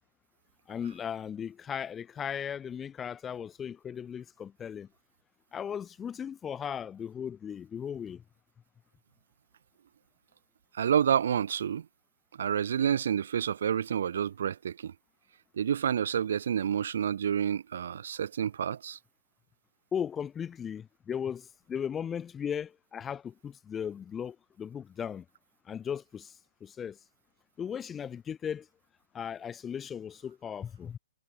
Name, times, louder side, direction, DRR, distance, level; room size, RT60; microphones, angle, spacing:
voice 1, 0.7-4.9 5.5-8.2 19.9-25.2 25.7-26.3 26.6-27.0 27.6-28.7 29.1-31.0, left 8 dB, 15° left, 1.5 m, -37 dB
voice 2, 10.7-11.9 12.4-14.9 15.5-19.0, right 8 dB, 65° right, 0.9 m, -29 dB
hypercardioid pair, 145°, 0 cm